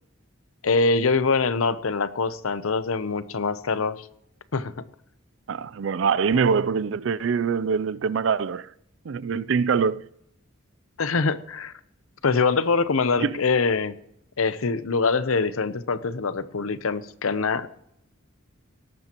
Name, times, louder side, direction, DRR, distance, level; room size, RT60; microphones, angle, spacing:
voice 1, 0.6-4.1 4.5-4.8 11.0-11.7 12.2-13.9 14.4-17.7, left 4 dB, 85° left, 0.7 m, -24 dB
voice 2, 5.5-8.7 9.1-10.1 13.2-13.4, right 6 dB, 60° right, 0.4 m, -24 dB
18.0 x 13.5 x 3.0 m
head